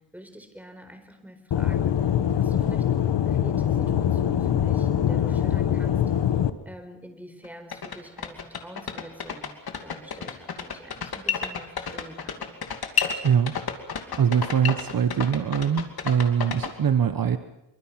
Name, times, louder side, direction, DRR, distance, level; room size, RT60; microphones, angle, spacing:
voice 1, 0.0-6.0 6.6-12.4, equal, 5° right, 6 dB, 4.7 m, -46 dB
Aircraft / Engine, 1.5-6.5, left 9 dB, 75° left, 1.4 m, -23 dB
sound 1, 7.4-7.5 7.7-16.7, left 6 dB, 60° left, 2.8 m, -30 dB
voice 2, 13.2-13.6 14.2-17.4, right 8 dB, 55° right, 9 dB, 1.2 m, -23 dB
26.0 x 24.0 x 5.9 m, 0.88 s
cardioid pair, 100°, 42 cm